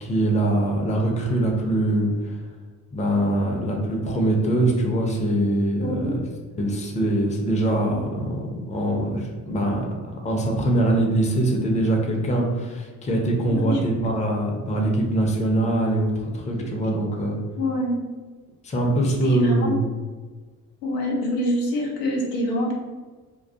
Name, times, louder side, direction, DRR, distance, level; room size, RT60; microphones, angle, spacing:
voice 1, 0.0-2.4 2.9-5.9 6.6-8.4 8.7-9.8 10.2-17.4 18.6-19.8, right 1 dB, 15° left, 0 dB, 0.5 m, -23 dB
voice 2, 5.8-6.1 13.5-13.8 17.6-18.0 19.0-19.8 20.8-22.7, left 1 dB, 85° left, -2 dB, 0.6 m, -25 dB
2.2 x 2.2 x 2.6 m, 1.3 s
hypercardioid pair, 45°, 47 cm